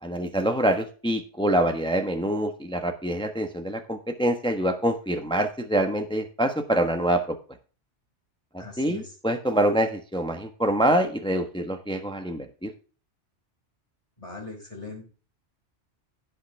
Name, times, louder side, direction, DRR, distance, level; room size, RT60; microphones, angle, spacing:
voice 1, 0.0-7.4 8.5-12.7, right 1 dB, 5° left, 6 dB, 1.1 m, -25 dB
voice 2, 8.6-9.2 14.2-15.1, left 3 dB, 25° left, -1 dB, 5.6 m, -40 dB
16.5 x 5.8 x 3.3 m, 0.37 s
omnidirectional pair, 1.2 m